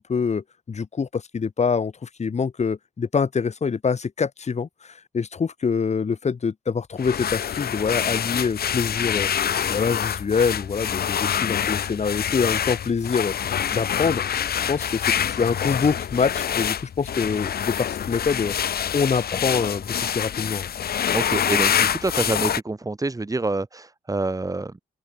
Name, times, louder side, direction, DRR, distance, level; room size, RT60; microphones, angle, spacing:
voice 1, 0.0-9.3 9.7-14.2 14.7-18.5 18.9-20.7, left 5 dB, 40° left, 1.6 m, -25 dB
sound 1, 7.0-22.6, left 9 dB, 65° left, 2.1 m, -26 dB
voice 2, 21.0-24.8, right 2 dB, 20° right, 2.9 m, -27 dB
open air
supercardioid pair, 60°, 17 cm